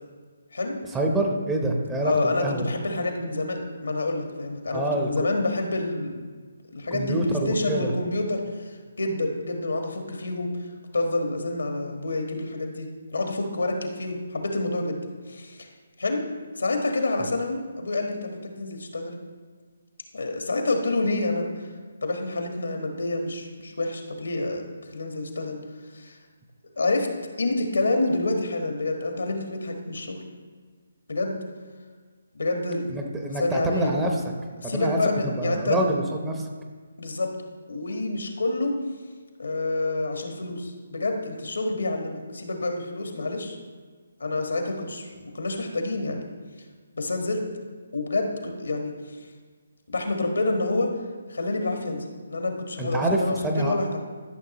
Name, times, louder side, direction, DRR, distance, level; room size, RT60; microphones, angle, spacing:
voice 1, 0.9-2.6 4.7-5.1 6.9-7.9 32.9-34.2 34.6-35.0 35.2-36.5 52.8-53.8, right 1 dB, 10° right, 1 dB, 0.8 m, -26 dB
voice 2, 2.0-6.2 6.7-8.7 9.0-10.5 10.9-15.0 15.3-15.7 16.0-16.2 16.5-19.2 20.1-21.7 22.0-24.7 24.9-25.6 25.9-26.1 26.8-27.1 27.4-30.2 31.1-31.4 32.3-34.1 34.6-35.8 37.0-37.3 37.7-38.8 39.4-43.6 44.2-46.2 46.9-47.4 47.9-48.9 49.9-50.9 51.3-54.0, left 2 dB, 80° left, 3 dB, 1.4 m, -28 dB
12.5 x 6.3 x 3.0 m, 1.5 s
figure-of-eight pair, 150°, 0 cm